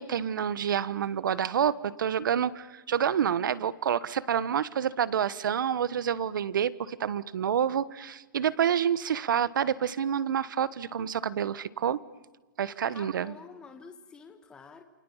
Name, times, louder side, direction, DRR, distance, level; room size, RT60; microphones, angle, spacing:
voice 1, 0.0-12.0 12.6-13.3, right 8 dB, 75° right, 18 dB, 1.3 m, -28 dB
voice 2, 12.9-14.8, left 5 dB, 10° left, 6 dB, 1.4 m, -48 dB
28.5 x 25.5 x 7.4 m, 1.3 s
hypercardioid pair, 170°, 11 cm